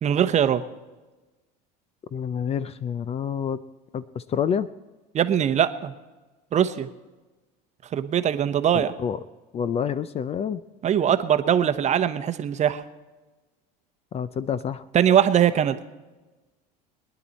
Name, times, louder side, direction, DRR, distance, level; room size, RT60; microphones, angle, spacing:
voice 1, 0.0-0.6 5.1-5.9 6.5-6.9 7.9-8.9 10.8-12.8 14.9-15.8, right 9 dB, 35° right, 10 dB, 0.9 m, -21 dB
voice 2, 2.1-3.6 3.9-4.7 8.7-9.2 9.5-10.6 14.1-14.8, left 7 dB, 30° left, 16 dB, 0.5 m, -28 dB
22.0 x 10.5 x 4.2 m, 1.2 s
supercardioid pair, 110°, 21 cm